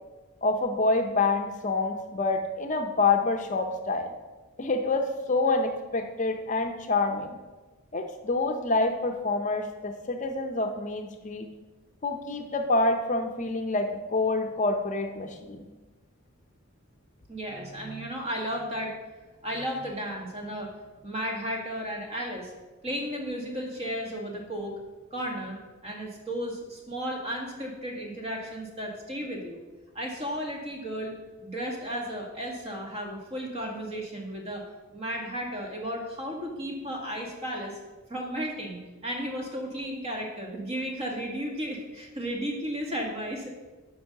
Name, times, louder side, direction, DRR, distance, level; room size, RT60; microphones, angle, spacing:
voice 1, 0.4-4.1 4.6-7.4 7.9-11.5 12.0-15.6, left 3 dB, 35° left, 5 dB, 0.7 m, -27 dB
voice 2, 17.3-19.0 19.4-20.7 21.0-22.5 22.8-24.7 25.1-29.6 29.9-31.1 31.4-34.7 34.9-37.8 38.1-43.5, equal, 30° right, 0 dB, 1.8 m, -34 dB
9.4 x 5.5 x 6.5 m, 1.2 s
head